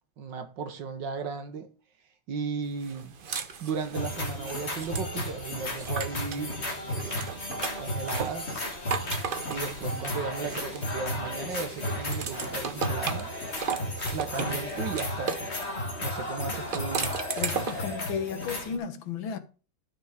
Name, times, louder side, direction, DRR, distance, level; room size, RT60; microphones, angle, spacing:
voice 1, 0.2-1.7 2.3-3.1 3.6-7.4 7.8-8.7 9.5-13.3 14.1-15.4 16.0-17.1, right 5 dB, 70° right, 1.9 m, -35 dB
sound 1, 2.8-6.5 6.9-11.1 11.5-15.5 16.5-17.9, right 6 dB, 55° right, 0.6 m, -36 dB
sound 2, 3.9-18.8, left 1 dB, 35° left, 2.1 m, -34 dB
voice 2, 17.4-19.4, left 7 dB, 85° left, 2.0 m, -34 dB
12.5 x 6.0 x 5.0 m
omnidirectional pair, 2.1 m